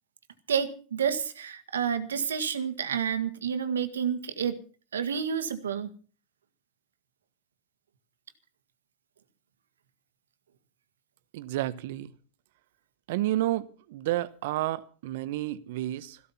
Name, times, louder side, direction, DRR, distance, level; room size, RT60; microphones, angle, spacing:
voice 1, 0.5-4.6 4.9-5.9, right 7 dB, 90° right, 1.7 m, -29 dB
voice 2, 11.3-12.1 13.1-16.2, right 15 dB, 70° right, 1.0 m, -30 dB
15.0 x 13.0 x 5.7 m
hypercardioid pair, 95°, 0 cm